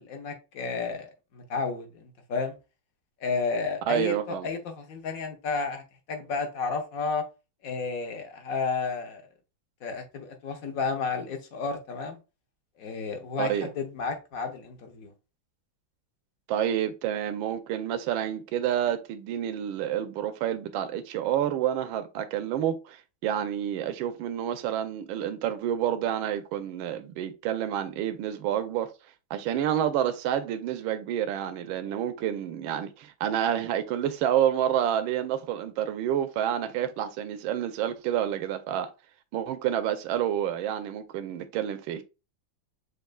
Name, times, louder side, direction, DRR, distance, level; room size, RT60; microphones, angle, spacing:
voice 1, 0.0-2.6 3.2-5.8 6.1-7.2 7.6-9.3 9.8-12.2 12.8-15.1, left 4 dB, 55° left, 1.1 m, -32 dB
voice 2, 3.9-4.5 13.4-13.7 16.5-28.9 29.3-38.9 39.3-42.0, right 10 dB, 80° right, 1.4 m, -29 dB
6.5 x 2.6 x 2.2 m
omnidirectional pair, 2.2 m